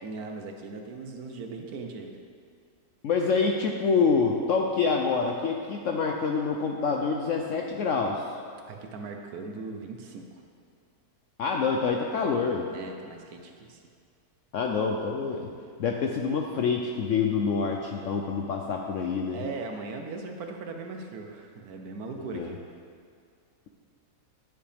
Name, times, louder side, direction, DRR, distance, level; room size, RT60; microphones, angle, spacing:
voice 1, 0.0-2.2 8.7-10.4 12.7-13.8 19.3-22.5, right 3 dB, 65° right, 3 dB, 1.2 m, -39 dB
voice 2, 3.0-8.2 11.4-12.7 14.5-15.5 15.8-19.4 22.3-22.5, left 5 dB, 70° left, 2 dB, 0.7 m, -26 dB
10.0 x 7.7 x 3.4 m, 2.2 s
omnidirectional pair, 1.8 m